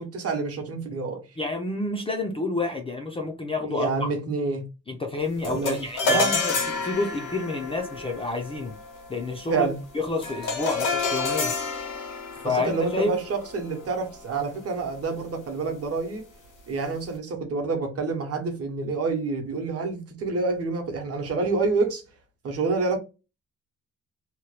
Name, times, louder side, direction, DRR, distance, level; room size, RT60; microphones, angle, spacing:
voice 1, 0.0-1.2 3.6-4.6 5.4-5.8 6.0-6.4 9.5-9.8 12.4-16.2 16.7-22.0 22.4-23.0, right 4 dB, 50° right, 0.8 m, -28 dB
voice 2, 1.4-4.1 4.9-8.7 9.1-9.7 9.9-11.5 12.4-13.2, left 3 dB, 20° left, 0.4 m, -29 dB
sound 1, 5.4-14.9, left 3 dB, 90° left, 1.1 m, -30 dB
2.8 x 2.2 x 3.1 m
wide cardioid pair, 175°, 31 cm